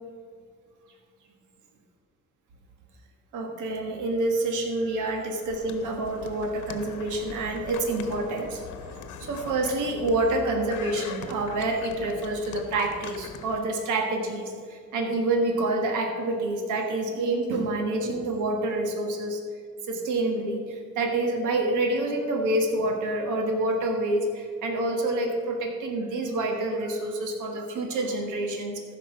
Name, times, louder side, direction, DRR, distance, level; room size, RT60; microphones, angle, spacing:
voice 1, 3.3-8.6 9.2-19.4 19.9-28.8, right 2 dB, 80° right, 3 dB, 1.5 m, -27 dB
sound 1, 5.5-13.6, left 7 dB, 80° left, 1.0 m, -42 dB
14.0 x 5.9 x 5.7 m, 2.1 s
cardioid pair, 90°, 30 cm